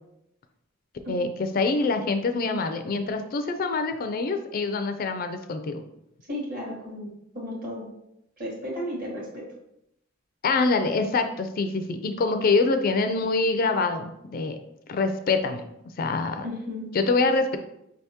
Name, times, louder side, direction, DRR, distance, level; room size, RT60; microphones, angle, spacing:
voice 1, 1.1-5.8 10.4-14.6 14.9-15.6 16.0-16.5 16.9-17.6, left 3 dB, 45° left, 8 dB, 0.4 m, -25 dB
voice 2, 6.3-7.1 7.3-7.8 8.4-9.2 16.4-16.9, left 1 dB, 45° right, -3 dB, 1.5 m, -33 dB
5.0 x 3.4 x 2.8 m, 0.81 s
head